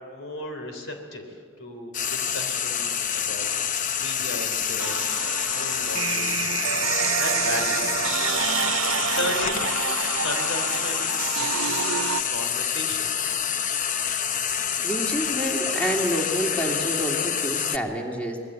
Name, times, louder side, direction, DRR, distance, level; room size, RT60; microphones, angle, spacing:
voice 1, 0.0-6.5 7.2-8.0 9.1-9.7 10.2-12.0 12.3-13.1, left 1 dB, 75° left, 5 dB, 3.5 m, -35 dB
Frying (food), 1.9-17.8, left 8 dB, 40° left, 0.7 m, -27 dB
sound 1, 4.8-12.2, right 9 dB, 85° right, 0.6 m, -28 dB
voice 2, 14.8-18.4, right 1 dB, 5° left, 0 dB, 2.8 m, -28 dB
25.5 x 20.0 x 8.0 m, 2.3 s
head